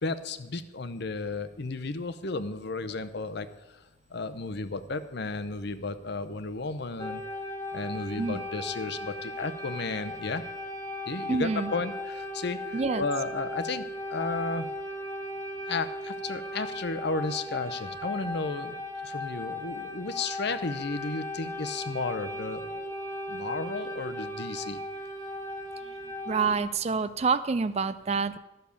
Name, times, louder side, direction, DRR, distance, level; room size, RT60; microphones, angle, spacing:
voice 1, 0.0-3.5 3.7-3.8 4.1-7.2 7.7-10.4 11.1-14.7 15.7-18.7 19.0-22.9 23.3-24.8, left 3 dB, 55° left, 12 dB, 0.7 m, -33 dB
sound 1, 7.0-26.6, left 1 dB, 15° left, 1.1 m, -37 dB
voice 2, 11.3-11.7 12.7-13.0 26.3-28.4, right 4 dB, 30° right, 14 dB, 0.4 m, -27 dB
13.0 x 6.7 x 7.0 m, 1.1 s
head